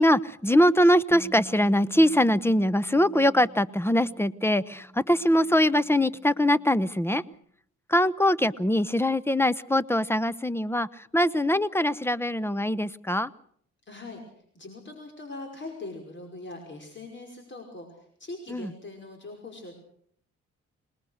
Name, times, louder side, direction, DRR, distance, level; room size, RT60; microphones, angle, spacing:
voice 1, 0.0-7.2 7.9-13.3 18.5-18.7, left 1 dB, 10° left, 18 dB, 0.9 m, -23 dB
Bass guitar, 1.1-7.4, right 2 dB, 25° right, 4.3 m, -48 dB
voice 2, 13.8-19.8, left 2 dB, 40° left, 3 dB, 5.5 m, -41 dB
26.0 x 20.0 x 6.6 m, 0.64 s
cardioid pair, 90°, 30 cm